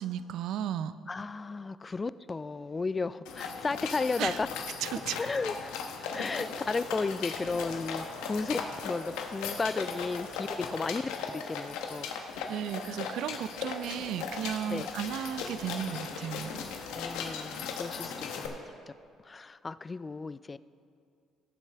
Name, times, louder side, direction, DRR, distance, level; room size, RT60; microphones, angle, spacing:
voice 1, 0.0-0.9 4.2-4.4 4.8-5.2 12.5-16.6, right 9 dB, 70° right, 14 dB, 0.3 m, -34 dB
voice 2, 1.1-4.5 5.2-12.1 14.7-14.9 16.9-18.5 18.9-19.0 19.2-20.6, left 3 dB, 30° left, 16 dB, 0.3 m, -34 dB
sound 1, 3.3-18.5, left 5 dB, 80° left, 0.9 m, -38 dB
17.0 x 7.2 x 3.4 m, 2.3 s
supercardioid pair, 65°, 0 cm